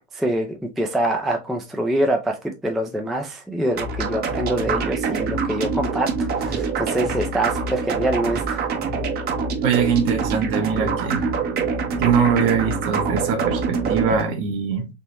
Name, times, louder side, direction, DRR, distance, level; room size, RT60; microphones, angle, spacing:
voice 1, 0.1-8.6, right 1 dB, ahead, 0.4 m, -25 dB
sound 1, 3.7-14.2, right 5 dB, 30° right, 0.7 m, -25 dB
voice 2, 9.6-11.3 12.0-14.9, right 6 dB, 55° right, 1.1 m, -22 dB
3.5 x 2.9 x 2.9 m
figure-of-eight pair, 80°, 33 cm